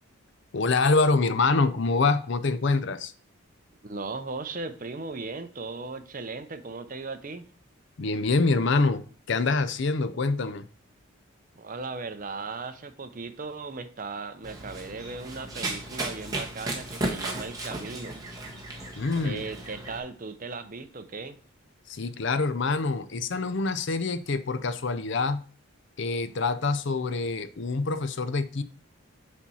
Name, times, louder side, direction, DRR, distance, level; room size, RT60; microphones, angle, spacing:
voice 1, 0.5-3.1 8.0-9.0 9.3-10.7 19.0-19.4 21.9-25.4 26.0-28.6, left 3 dB, 55° left, 0.5 m, -25 dB
voice 2, 3.8-7.5 11.5-18.2 19.2-21.4, right 3 dB, 40° right, 0.6 m, -37 dB
Run, 14.4-20.0, right 2 dB, 15° right, 1.3 m, -35 dB
7.2 x 4.4 x 5.5 m
head